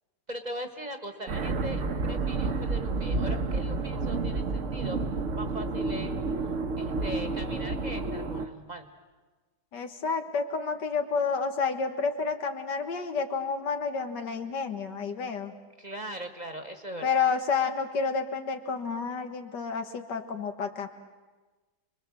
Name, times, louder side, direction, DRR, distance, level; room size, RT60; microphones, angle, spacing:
voice 1, 0.3-5.0 5.3-6.2 6.8-8.9 15.8-17.2, equal, 25° right, 6 dB, 1.5 m, -40 dB
sound 1, 1.3-8.5, right 3 dB, 50° right, 1.3 m, -30 dB
voice 2, 9.7-15.5 17.0-20.9, left 5 dB, 80° left, 6 dB, 2.2 m, -30 dB
29.0 x 22.0 x 7.5 m, 1.3 s
omnidirectional pair, 1.8 m